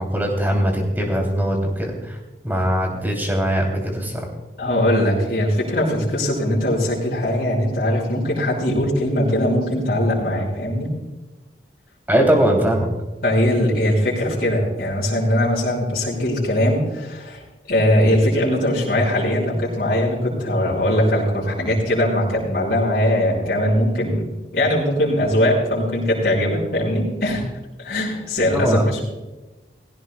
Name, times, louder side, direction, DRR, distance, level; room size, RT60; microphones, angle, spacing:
voice 1, 0.0-2.2 2.4-4.3 12.1-12.9 28.5-28.9, equal, 10° right, 1 dB, 3.0 m, -21 dB
voice 2, 4.6-10.9 13.2-17.4 17.7-27.5 27.8-29.0, left 1 dB, 55° left, -6 dB, 5.6 m, -20 dB
19.0 x 16.5 x 2.3 m, 1.1 s
head